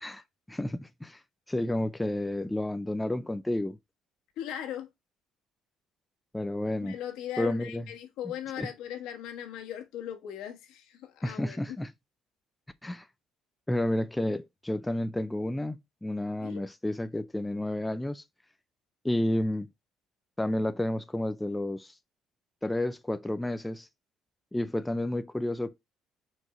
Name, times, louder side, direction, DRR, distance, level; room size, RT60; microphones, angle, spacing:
voice 1, 0.5-1.2 1.5-3.8 6.3-6.9 7.4-7.8 8.6-8.7 11.2-11.9 12.8-13.1 13.7-18.2 19.0-19.7 20.4-21.9 22.6-23.9 24.5-25.7, left 1 dB, 5° left, 0.3 m, -31 dB
voice 2, 4.4-4.9 6.8-11.8 16.4-16.6, left 10 dB, 80° left, 1.4 m, -39 dB
4.5 x 4.2 x 4.9 m
cardioid pair, 140°, 0 cm